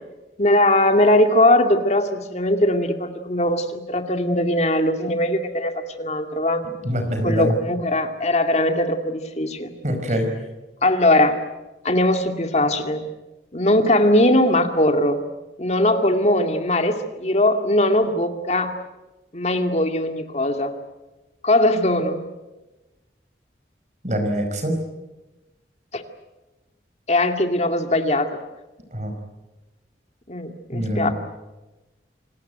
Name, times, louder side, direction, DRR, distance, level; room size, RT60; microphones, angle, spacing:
voice 1, 0.4-6.6 7.2-9.7 10.8-11.4 11.8-13.0 13.5-15.2 15.6-18.7 19.3-20.7 21.4-22.2 25.9-26.0 27.1-28.3 30.3-31.1, left 1 dB, 40° left, 6 dB, 2.2 m, -20 dB
voice 2, 6.8-7.5 9.8-10.3 24.0-24.8 28.9-29.1 30.7-31.1, equal, 40° right, 6 dB, 5.0 m, -24 dB
27.5 x 19.0 x 9.3 m, 1.1 s
head